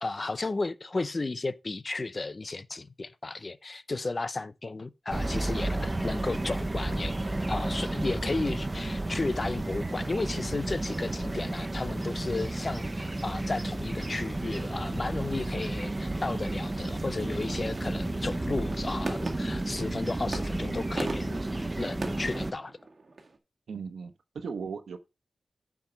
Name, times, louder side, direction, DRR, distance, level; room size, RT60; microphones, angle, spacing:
voice 1, 0.0-7.1 7.5-22.8, left 3 dB, 30° left, 0.7 m, -34 dB
sound 1, 5.1-22.5, right 2 dB, 20° right, 0.7 m, -32 dB
sound 2, 11.9-23.4, right 3 dB, 45° right, 1.9 m, -43 dB
voice 2, 23.7-25.0, right 5 dB, 85° right, 1.2 m, -37 dB
9.2 x 4.8 x 5.8 m
wide cardioid pair, 130°, 0 cm